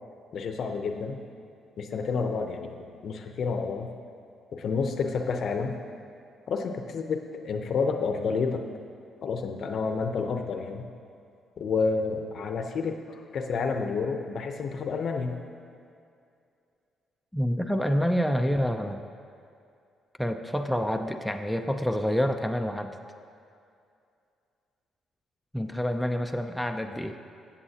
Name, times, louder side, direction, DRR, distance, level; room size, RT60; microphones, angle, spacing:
voice 1, 0.3-1.2 1.8-3.9 4.5-5.8 6.5-8.6 9.2-10.9 11.6-15.4, left 4 dB, 60° left, 5 dB, 0.7 m, -29 dB
voice 2, 17.3-19.0 20.2-23.0 25.5-27.2, equal, ahead, 4 dB, 0.5 m, -27 dB
15.0 x 7.3 x 2.8 m, 2.5 s
cardioid pair, 90°, 0 cm